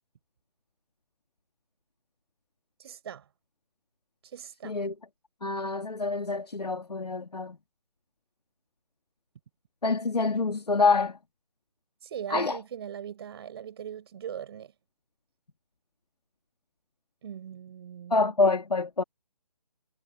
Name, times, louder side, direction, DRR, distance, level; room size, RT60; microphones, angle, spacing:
voice 1, 2.8-3.3 4.2-4.8 12.0-14.7 17.2-18.3, right 9 dB, 40° right, 4.2 m, -40 dB
voice 2, 5.4-7.6 9.8-11.2 12.3-12.6 18.1-19.0, left 3 dB, 80° left, 2.3 m, -26 dB
figure-of-eight pair, 150°, 20 cm